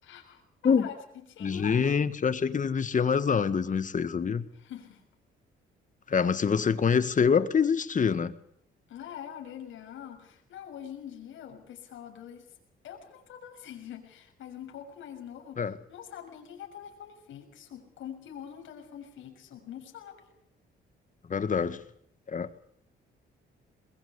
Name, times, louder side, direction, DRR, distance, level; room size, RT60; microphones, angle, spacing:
voice 1, 0.0-0.9 1.3-1.8 4.5-5.0 6.1-6.3 8.9-12.5 12.8-20.2, left 9 dB, 80° left, 6.5 m, -44 dB
voice 2, 1.4-4.5 6.1-8.3 15.6-15.7 21.3-21.8 22.3-22.5, left 6 dB, 40° left, 1.8 m, -25 dB
22.5 x 21.5 x 8.2 m
cardioid pair, 90°, 20 cm